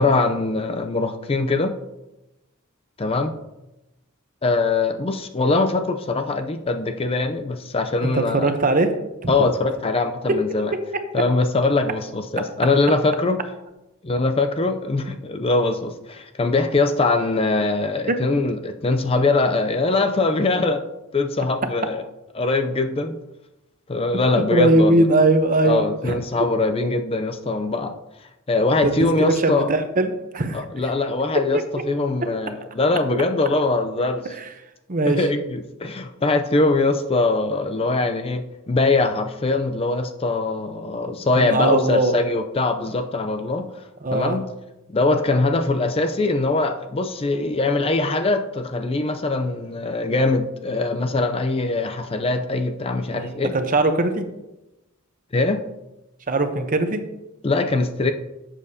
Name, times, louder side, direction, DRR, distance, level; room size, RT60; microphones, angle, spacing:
voice 1, 0.0-1.8 3.0-3.3 4.4-8.5 9.3-10.7 11.1-13.4 14.0-20.8 21.1-22.0 22.3-23.2 23.9-25.1 25.6-27.9 28.5-29.7 30.5-31.6 31.9-34.3 35.1-43.7 44.1-44.4 44.9-53.5 55.3-55.6 57.4-58.1, left 3 dB, 25° left, 7 dB, 0.5 m, -22 dB
voice 2, 8.0-9.0 9.2-9.3 10.3-10.4 10.7-10.8 18.1-18.2 24.5-26.2 28.8-30.6 34.4-34.5 34.9-35.2 41.4-42.2 44.0-44.4 53.1-54.3 56.3-57.0, right 2 dB, 40° right, 7 dB, 0.8 m, -20 dB
11.5 x 7.5 x 2.8 m, 0.95 s
head